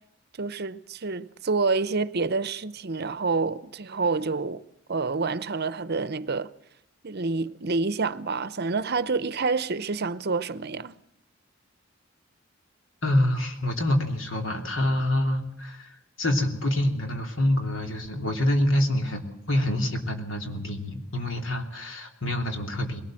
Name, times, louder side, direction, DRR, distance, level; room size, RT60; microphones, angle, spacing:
voice 1, 0.4-4.6 4.9-6.5 7.0-11.0, right 4 dB, 50° right, 0.8 m, -28 dB
voice 2, 13.0-23.0, left 1 dB, 65° left, 3.1 m, -26 dB
21.5 x 18.0 x 7.6 m
head